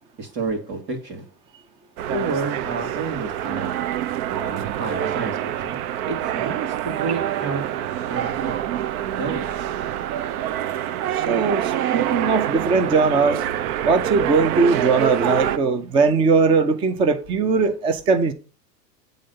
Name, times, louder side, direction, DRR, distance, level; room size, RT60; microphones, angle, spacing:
voice 1, 0.2-1.2 2.0-3.8 4.3-8.6 9.2-9.5, right 4 dB, 90° right, 2.5 m, -30 dB
sound 1, 2.0-15.6, right 11 dB, 60° right, 0.6 m, -26 dB
voice 2, 11.1-13.4 13.8-18.3, right 4 dB, 10° right, 0.3 m, -20 dB
7.6 x 3.8 x 5.3 m
hypercardioid pair, 105°, 49 cm